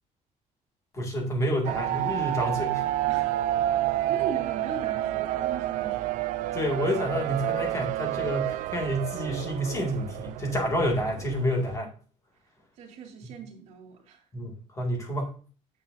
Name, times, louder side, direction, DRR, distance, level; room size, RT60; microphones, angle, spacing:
voice 1, 0.9-2.8 6.5-11.9 14.3-15.3, equal, 25° left, 2.2 m, -29 dB
sound 1, 1.6-11.8, right 14 dB, 75° right, 0.4 m, -29 dB
voice 2, 3.1-3.5 3.9-6.0 12.8-14.2, right 6 dB, 55° right, 2.3 m, -39 dB
8.8 x 7.1 x 2.7 m
cardioid pair, 155°, 13 cm